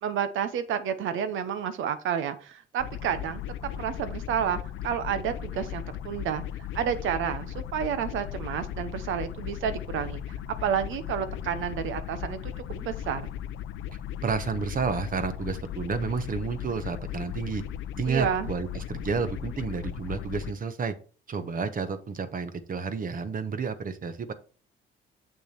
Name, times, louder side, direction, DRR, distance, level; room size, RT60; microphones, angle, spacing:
voice 1, 0.0-3.4 3.8-6.4 6.7-10.2 10.6-13.3 18.1-18.5, right 8 dB, 85° right, 12 dB, 1.0 m, -30 dB
sound 1, 2.8-20.5, left 10 dB, 85° left, 0.6 m, -37 dB
voice 2, 14.2-17.6 18.0-20.9 21.3-24.3, right 5 dB, 45° right, 10 dB, 1.0 m, -31 dB
6.8 x 6.4 x 4.3 m, 0.38 s
cardioid pair, 90°, 20 cm